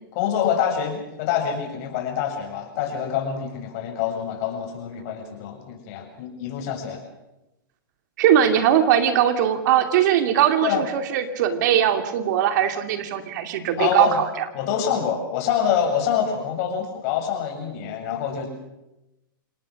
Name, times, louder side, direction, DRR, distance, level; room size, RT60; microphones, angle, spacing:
voice 1, 0.1-7.0 10.6-10.8 13.8-14.2 14.5-18.5, left 8 dB, 45° left, 2 dB, 7.5 m, -26 dB
voice 2, 8.2-14.4, right 10 dB, 55° right, 8 dB, 2.5 m, -20 dB
28.5 x 19.0 x 6.5 m, 0.97 s
hypercardioid pair, 135°, 12 cm